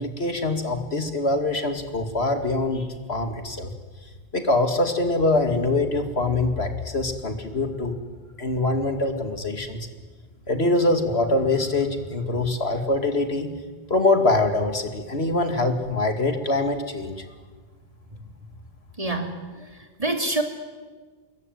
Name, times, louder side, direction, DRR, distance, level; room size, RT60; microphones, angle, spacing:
voice 1, 0.0-3.7 4.3-8.0 8.4-9.8 10.5-13.5 13.9-17.1, left 2 dB, 70° left, 7 dB, 2.7 m, -24 dB
voice 2, 19.0-19.7 20.0-20.4, right 2 dB, 35° right, 4 dB, 3.4 m, -26 dB
27.0 x 22.0 x 9.4 m, 1.4 s
omnidirectional pair, 1.1 m